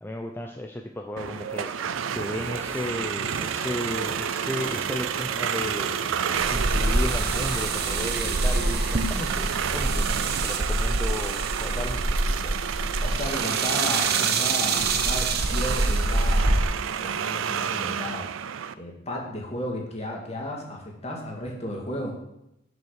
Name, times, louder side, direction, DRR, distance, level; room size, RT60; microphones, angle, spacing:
voice 1, 0.0-6.0 6.5-12.6, left 1 dB, 10° left, 3 dB, 0.5 m, -34 dB
sound 1, 1.2-18.7, right 7 dB, 85° right, 0.4 m, -30 dB
sound 2, 2.4-9.2, equal, 15° right, 1.5 m, -42 dB
sound 3, 6.4-16.6, right 2 dB, 55° right, 0.8 m, -26 dB
voice 2, 13.0-16.6 17.0-18.3 18.7-22.1, left 1 dB, 35° left, -1 dB, 2.0 m, -34 dB
7.6 x 5.5 x 6.5 m, 0.85 s
head